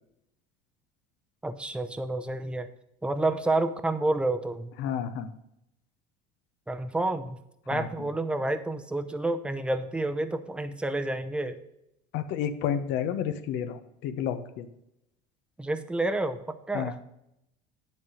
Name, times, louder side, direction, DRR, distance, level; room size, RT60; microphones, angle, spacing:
voice 1, 1.4-2.7 3.0-4.7 6.7-7.4 7.7-11.6 15.6-16.4 16.7-17.0, right 2 dB, 5° right, 10 dB, 0.7 m, -29 dB
voice 2, 4.8-5.3 7.7-7.9 12.1-14.7 16.7-17.0, left 9 dB, 65° left, 10 dB, 1.0 m, -31 dB
10.5 x 4.2 x 6.4 m, 0.82 s
supercardioid pair, 110°, 20 cm